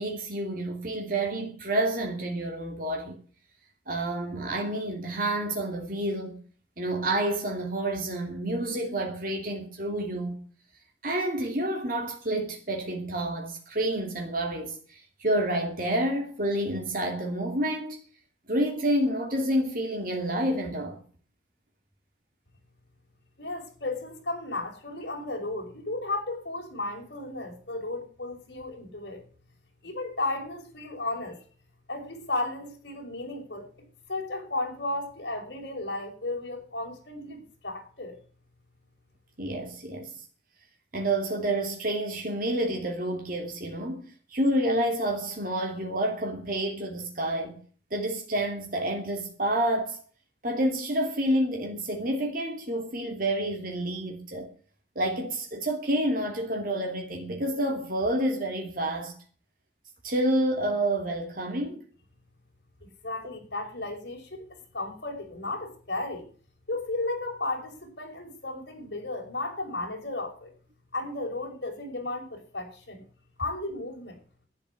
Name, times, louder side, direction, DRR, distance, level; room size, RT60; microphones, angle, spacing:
voice 1, 0.0-3.2 3.9-6.4 6.8-10.4 11.0-18.0 18.5-21.0 39.4-40.1 40.9-47.6 47.9-50.0 50.4-54.5 54.9-59.2 60.0-61.8, right 1 dB, 50° right, 2.8 m, -29 dB
voice 2, 23.4-29.2 29.8-31.4 31.9-33.7 34.1-38.2 62.8-66.3 66.7-70.5 70.9-73.0 73.4-74.2, left 2 dB, 60° left, 5.9 m, -34 dB
11.5 x 9.8 x 8.4 m
head